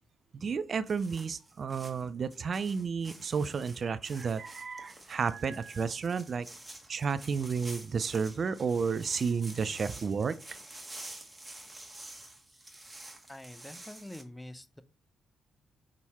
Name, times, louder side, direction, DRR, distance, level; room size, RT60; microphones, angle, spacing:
voice 1, 0.3-6.5 6.9-10.4, right 5 dB, 50° right, 0.4 m, -32 dB
sound 1, 0.9-14.2, right 1 dB, 15° right, 1.6 m, -49 dB
voice 2, 13.3-14.8, left 1 dB, 10° left, 0.7 m, -46 dB
6.1 x 3.7 x 4.2 m
supercardioid pair, 55°, 0 cm